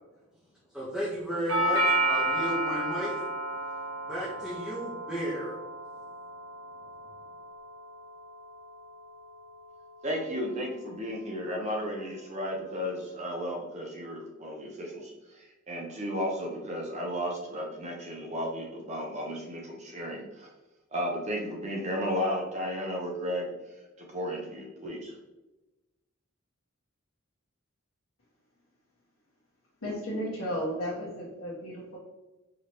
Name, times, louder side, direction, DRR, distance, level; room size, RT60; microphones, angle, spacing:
voice 1, 0.7-3.2 4.1-5.5, equal, ahead, -9 dB, 0.9 m, -33 dB
Doorbell, 1.5-9.5, right 1 dB, 80° right, 0.9 m, -32 dB
voice 2, 10.0-20.5 20.9-23.5 24.0-25.2, equal, 35° right, 0 dB, 0.7 m, -34 dB
voice 3, 29.8-32.0, equal, 90° left, -8 dB, 1.1 m, -34 dB
4.9 x 3.0 x 2.9 m, 1.1 s
head